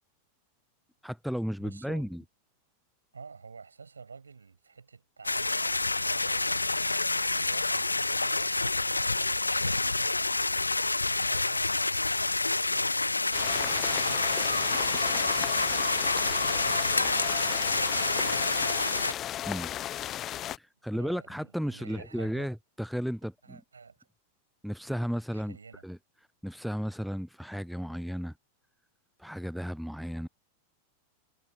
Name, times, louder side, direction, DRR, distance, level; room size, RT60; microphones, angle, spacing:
voice 1, 1.0-2.2 19.5-19.7 20.6-23.6 24.6-25.6 25.8-26.0 26.4-28.3 29.2-30.3, equal, ahead, 0.5 m, -34 dB
voice 2, 1.6-2.1 3.1-10.2 11.0-11.8 12.1-15.0 16.1-18.7 20.9-22.5 23.4-24.1 25.3-25.9, right 5 dB, 75° right, 7.0 m, -49 dB
sound 1, 5.2-19.1, left 3 dB, 80° left, 0.6 m, -28 dB
sound 2, 13.3-20.6, left 12 dB, 30° left, 1.1 m, -35 dB
figure-of-eight pair, 90°, 0 cm